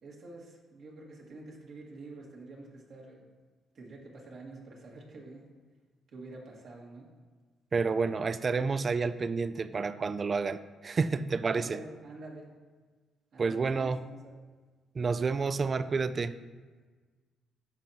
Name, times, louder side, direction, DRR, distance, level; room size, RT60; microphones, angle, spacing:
voice 1, 0.0-3.3 3.7-5.5 6.1-7.1 11.5-12.5 13.3-14.3, right 2 dB, 65° right, -2 dB, 1.7 m, -47 dB
voice 2, 7.7-11.8 13.4-14.0 14.9-16.4, right 4 dB, 45° right, 14 dB, 0.4 m, -29 dB
12.5 x 4.5 x 2.8 m, 1.4 s
supercardioid pair, 60°, 0 cm